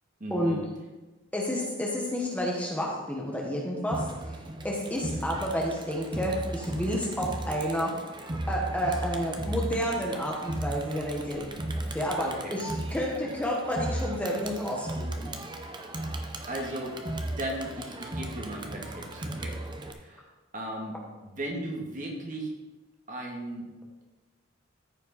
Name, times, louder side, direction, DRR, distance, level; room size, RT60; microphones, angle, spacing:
voice 1, 0.2-0.6 12.2-12.5 16.5-17.0 17.2-19.6 20.0-20.2 20.5-21.0 21.2-22.5 23.1-23.7, right 1 dB, 40° right, 0 dB, 1.7 m, -36 dB
voice 2, 1.3-4.0 4.6-7.9 8.5-11.5 11.9-15.3, equal, 5° left, -2 dB, 1.2 m, -30 dB
Crowd, 3.9-19.9, right 1 dB, 20° right, 0.7 m, -36 dB
13.5 x 5.2 x 4.2 m, 1.2 s
head